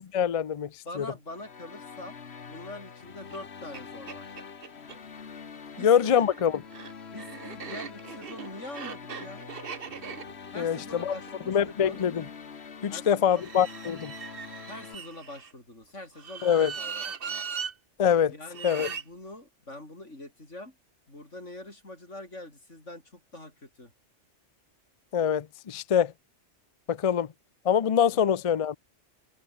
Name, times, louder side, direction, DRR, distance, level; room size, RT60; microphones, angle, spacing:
voice 1, 0.0-0.7 1.0-1.1 5.8-6.6 10.6-11.1 11.5-12.2 12.8-14.1 16.4-16.7 18.0-18.3 18.6-18.9 25.1-26.1 26.9-27.3 27.7-28.8, left 8 dB, 40° left, 0.5 m, -24 dB
voice 2, 0.8-2.2 2.5-4.4 5.7-6.3 7.1-9.5 10.5-12.0 12.9-13.5 14.7-17.4 18.3-20.7 21.1-23.9 28.3-28.4, left 1 dB, 90° left, 7.5 m, -44 dB
sound 1, 1.3-15.0, left 6 dB, 65° left, 1.6 m, -45 dB
sound 2, 3.3-3.4 3.7-5.0 5.9-12.1 13.2-15.5 16.1-17.7 18.5-19.0, right 6 dB, 55° right, 1.3 m, -40 dB
omnidirectional pair, 1.2 m